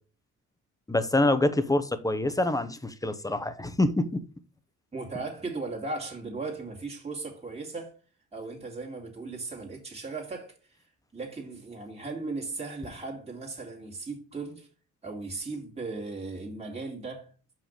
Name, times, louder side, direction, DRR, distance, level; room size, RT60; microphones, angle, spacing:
voice 1, 0.9-4.2, left 2 dB, 10° left, 0.9 m, -26 dB
voice 2, 4.9-7.9 8.3-10.6 11.1-14.7 15.0-17.3, right 3 dB, 20° right, 2.3 m, -37 dB
5.8 x 5.0 x 5.2 m
cardioid pair, 90°, 30 cm